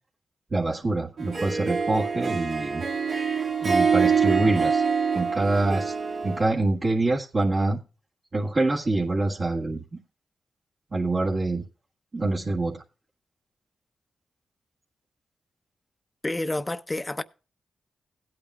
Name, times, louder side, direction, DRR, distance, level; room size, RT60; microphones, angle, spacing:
voice 1, 0.5-2.8 3.6-4.8 5.1-5.9 6.2-7.8 8.3-9.8 10.9-11.6 12.1-12.8, right 2 dB, 45° right, 1.7 m, -25 dB
Harp, 1.2-6.5, right 5 dB, 60° right, 2.2 m, -25 dB
voice 2, 16.2-17.2, left 2 dB, 20° left, 0.7 m, -29 dB
17.5 x 8.7 x 2.4 m
cardioid pair, 60°, 0 cm